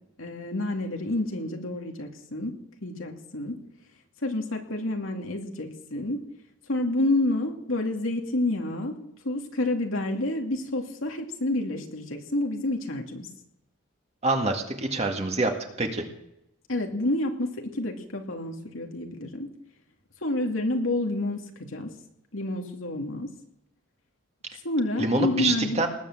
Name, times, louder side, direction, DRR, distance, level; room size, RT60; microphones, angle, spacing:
voice 1, 0.2-2.5 2.8-3.5 4.2-6.2 6.7-8.9 9.2-13.3 16.7-19.5 20.2-21.9 22.3-23.3 24.6-25.9, left 1 dB, 85° left, 3 dB, 2.5 m, -29 dB
voice 2, 14.2-16.0 25.0-25.9, right 2 dB, 30° right, 4 dB, 2.0 m, -26 dB
19.5 x 8.9 x 7.4 m, 0.83 s
head